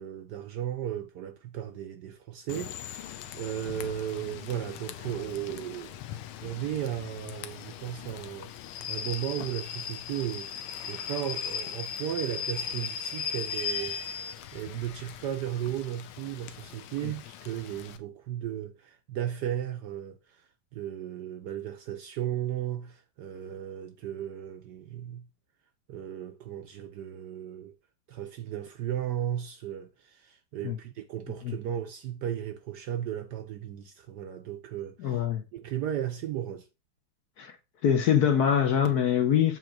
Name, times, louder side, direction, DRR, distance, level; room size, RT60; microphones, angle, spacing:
voice 1, 0.0-6.0 6.4-25.3 25.9-27.7 28.1-35.2 35.5-36.7, right 11 dB, 70° right, 1.0 m, -35 dB
Rain / Train, 2.5-18.0, left 8 dB, 85° left, 1.5 m, -38 dB
voice 2, 35.0-35.4 37.4-37.5 37.8-39.6, left 9 dB, 60° left, 1.1 m, -24 dB
7.8 x 3.0 x 5.8 m
omnidirectional pair, 2.3 m